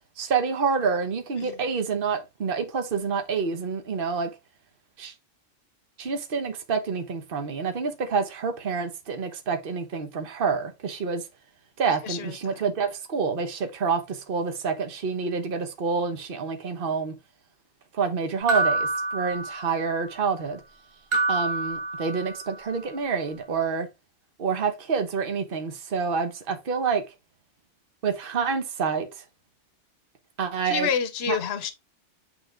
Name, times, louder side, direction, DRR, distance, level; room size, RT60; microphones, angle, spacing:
voice 1, 0.2-4.3 5.0-5.1 6.0-11.2 11.8-17.1 17.9-20.6 21.3-23.9 24.4-27.0 28.0-29.1 30.4-30.9 31.3-31.4, right 5 dB, 50° right, 1.2 m, -27 dB
voice 2, 12.0-12.6 30.6-31.7, left 7 dB, 65° left, 1.1 m, -29 dB
sound 1, 18.5-20.0 21.1-22.6, right 2 dB, 25° right, 1.2 m, -27 dB
8.4 x 3.3 x 3.7 m
omnidirectional pair, 1.2 m